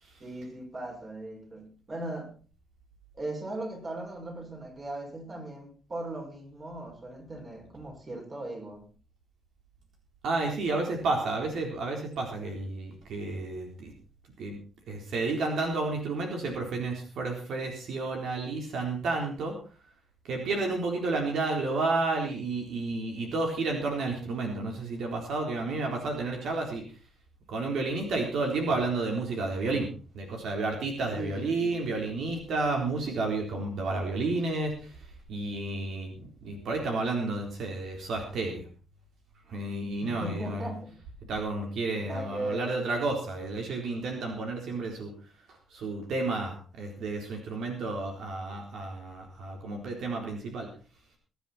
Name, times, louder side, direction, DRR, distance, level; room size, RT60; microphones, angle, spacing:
voice 1, 0.2-2.3 3.1-8.9 31.1-31.8 40.0-41.0 42.0-42.6, right 1 dB, 30° right, 1 dB, 6.5 m, -38 dB
voice 2, 10.2-13.9 14.4-14.6 14.9-19.6 20.2-26.8 27.5-38.7 39.5-40.7 41.3-45.1 45.5-50.7, right 3 dB, 75° right, 2 dB, 4.0 m, -31 dB
22.0 x 10.5 x 4.3 m, 0.37 s
cardioid pair, 120°, 0 cm